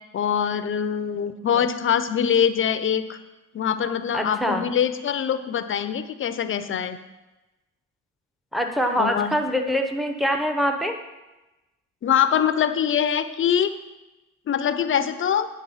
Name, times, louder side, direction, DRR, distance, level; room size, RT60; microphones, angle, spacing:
voice 1, 0.1-3.2 3.5-7.0 9.0-9.3 12.0-13.7 14.5-15.5, left 8 dB, 45° left, 11 dB, 0.5 m, -23 dB
voice 2, 4.1-4.7 8.5-10.9, equal, ahead, 4 dB, 0.7 m, -24 dB
8.4 x 3.6 x 5.5 m, 1.1 s
cardioid pair, 90°, 30 cm